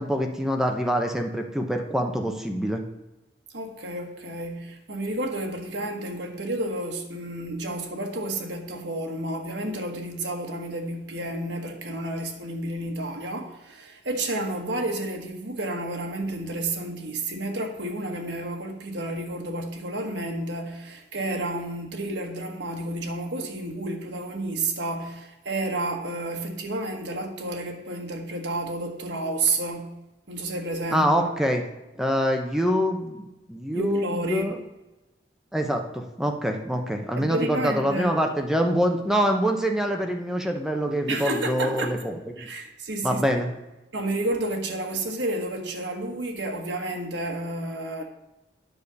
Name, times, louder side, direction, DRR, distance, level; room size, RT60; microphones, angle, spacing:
voice 1, 0.0-2.8 30.9-31.6 32.0-34.6 35.5-42.5 43.0-43.5, equal, 5° right, 0.8 m, -25 dB
voice 2, 3.5-30.0 30.3-31.3 33.7-34.5 37.2-38.2 41.1-42.0 42.4-43.2 43.9-48.0, right 2 dB, 70° right, 1.5 m, -31 dB
9.4 x 5.0 x 6.8 m
head